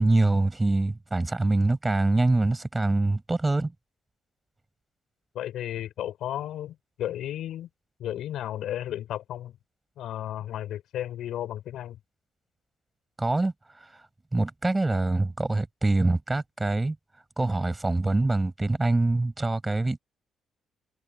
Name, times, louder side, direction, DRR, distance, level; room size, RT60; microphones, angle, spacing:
voice 1, 0.0-3.7 13.2-13.5 14.3-17.0 17.4-20.0, right 2 dB, 15° right, 6.0 m, -24 dB
voice 2, 5.3-7.7 8.0-9.5 10.0-12.0, left 12 dB, 80° left, 6.6 m, -33 dB
cardioid pair, 90°, 0 cm